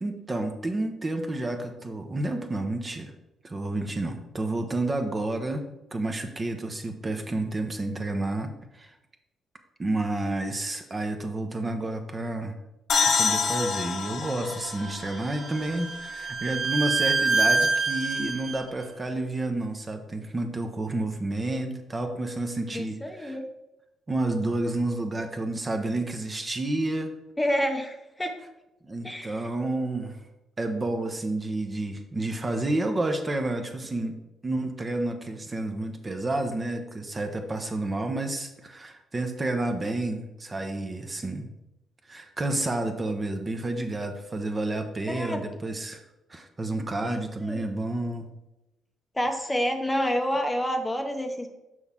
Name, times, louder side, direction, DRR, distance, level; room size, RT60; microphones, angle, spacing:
voice 1, 0.0-3.1 3.4-8.9 9.8-12.5 13.2-23.4 24.1-27.1 28.8-30.2 30.6-34.2 34.4-41.5 42.1-46.0 46.3-48.3, right 2 dB, 25° right, 5 dB, 0.9 m, -30 dB
sound 1, 12.9-16.5, left 5 dB, 55° left, 0.8 m, -28 dB
Bowed string instrument, 14.8-18.6, right 3 dB, 65° right, 1.1 m, -26 dB
voice 2, 22.7-23.4 27.4-28.3 29.0-29.5 45.0-45.4 47.0-47.2 47.5-47.7 49.1-51.5, equal, 15° left, 5 dB, 0.8 m, -28 dB
6.3 x 5.8 x 3.6 m, 0.96 s
cardioid pair, 90°, 0 cm